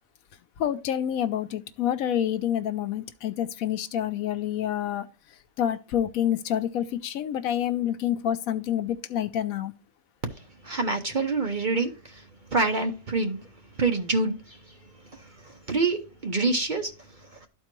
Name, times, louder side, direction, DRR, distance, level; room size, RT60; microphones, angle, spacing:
voice 1, 0.6-5.1 5.6-9.7, left 10 dB, 75° left, 1.1 m, -28 dB
voice 2, 10.3-13.5 13.8-14.8 15.1-17.5, right 3 dB, 40° right, 0.8 m, -27 dB
12.5 x 4.4 x 3.0 m
omnidirectional pair, 1.5 m